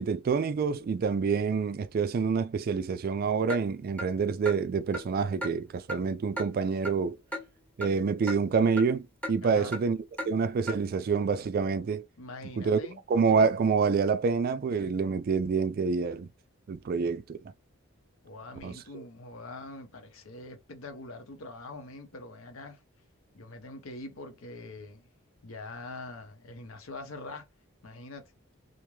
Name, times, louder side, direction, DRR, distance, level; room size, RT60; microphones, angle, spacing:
voice 1, 0.0-7.2 7.8-10.0 10.3-12.1 12.6-12.8 13.1-16.3 16.7-17.4 18.6-19.0, right 5 dB, 45° right, 0.3 m, -27 dB
Clock, 3.5-3.6 4.0-4.1 4.5-4.6 4.9-5.1 5.4-5.5 5.9-6.0 6.4-6.5 6.8-7.0 7.3-7.4 7.8-7.9 8.3-8.4 8.8-8.9 9.2-9.4 9.7-9.8 10.2-10.3 10.7-10.8, equal, 5° left, 0.7 m, -35 dB
voice 2, 9.4-9.8 12.2-13.0 18.2-22.8 23.3-25.1 25.4-27.5 27.8-28.3, left 2 dB, 75° left, 0.8 m, -43 dB
2.5 x 2.2 x 3.1 m
head